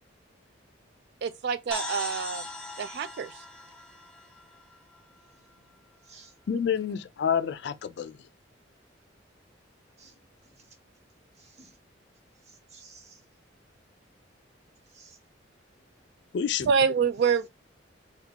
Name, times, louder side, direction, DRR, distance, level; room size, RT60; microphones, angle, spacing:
voice 1, 1.2-2.4 2.8-3.4 16.6-17.5, right 6 dB, 60° right, 0.3 m, -26 dB
sound 1, 1.7-5.3, left 2 dB, 5° left, 0.6 m, -39 dB
voice 2, 5.3-5.8 6.0-6.3 10.0-10.8 11.3-11.8 12.4-13.2 14.9-15.2, right 4 dB, 35° right, 0.9 m, -56 dB
voice 3, 6.5-8.2 16.3-16.7, left 7 dB, 60° left, 0.3 m, -28 dB
3.6 x 2.4 x 2.8 m
head